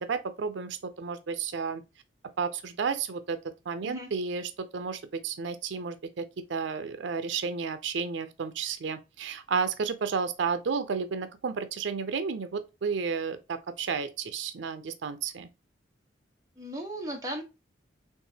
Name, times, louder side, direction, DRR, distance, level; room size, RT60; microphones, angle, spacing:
voice 1, 0.0-1.8 2.4-3.4 3.7-15.5, right 5 dB, 85° right, 0.5 m, -32 dB
voice 2, 16.6-17.4, right 1 dB, 20° right, 1.1 m, -36 dB
4.5 x 3.3 x 2.8 m
head